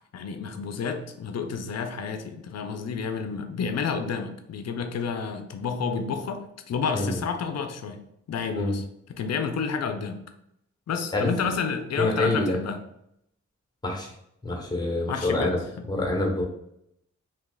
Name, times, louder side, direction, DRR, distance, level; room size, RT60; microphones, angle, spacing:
voice 1, 0.0-8.0 8.3-8.8 9.1-10.2 10.9-12.8 14.8-15.6, left 5 dB, 60° left, 7 dB, 0.5 m, -30 dB
voice 2, 12.0-12.6 13.8-14.1 14.4-15.6 15.9-16.4, left 2 dB, 15° left, -1 dB, 1.2 m, -26 dB
2.9 x 2.3 x 3.8 m, 0.76 s
cardioid pair, 65°, 30 cm